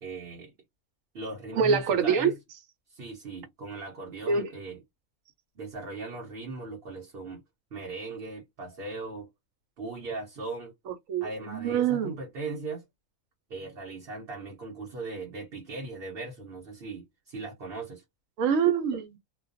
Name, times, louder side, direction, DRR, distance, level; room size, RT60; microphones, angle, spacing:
voice 1, 0.0-0.5 1.1-2.3 2.9-4.8 5.6-7.4 7.7-9.3 9.8-10.7 11.2-12.8 13.5-18.0, right 3 dB, 50° right, 0.9 m, -38 dB
voice 2, 1.5-2.3 4.3-4.5 10.9-12.1 18.4-19.1, right 6 dB, 75° right, 1.0 m, -25 dB
2.4 x 2.2 x 2.5 m
omnidirectional pair, 1.4 m